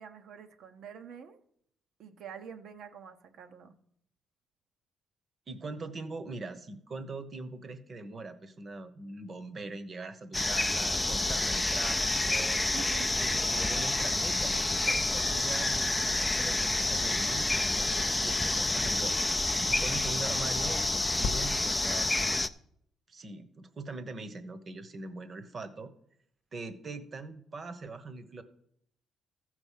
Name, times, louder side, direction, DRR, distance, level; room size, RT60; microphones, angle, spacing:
voice 1, 0.0-1.4 2.0-3.7 11.1-11.5 12.7-13.2, right 7 dB, 70° right, 8 dB, 0.9 m, -47 dB
voice 2, 5.5-12.7 13.2-22.1 23.1-25.9 26.5-28.4, right 3 dB, 40° right, 11 dB, 1.1 m, -42 dB
sound 1, 10.3-22.5, left 2 dB, 15° left, 0.4 m, -29 dB
Crackle, 16.7-21.9, left 5 dB, 65° left, 0.8 m, -44 dB
14.5 x 4.9 x 5.6 m, 0.69 s
cardioid pair, 90°, 0 cm